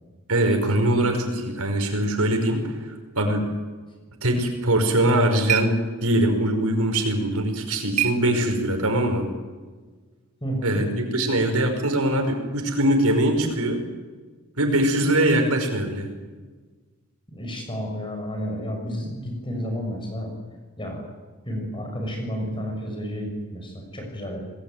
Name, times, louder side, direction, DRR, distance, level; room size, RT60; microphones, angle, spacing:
voice 1, 0.3-3.5 4.2-5.8 6.0-9.3 10.6-13.8 14.6-16.1, right 1 dB, 90° right, 4 dB, 5.6 m, -22 dB
sound 1, 4.7-9.0, right 10 dB, 30° right, 1.4 m, -32 dB
voice 2, 10.4-10.9 17.3-20.3 20.8-21.1 21.4-24.4, equal, 20° left, 2 dB, 6.8 m, -31 dB
28.5 x 20.0 x 9.3 m, 1.4 s
head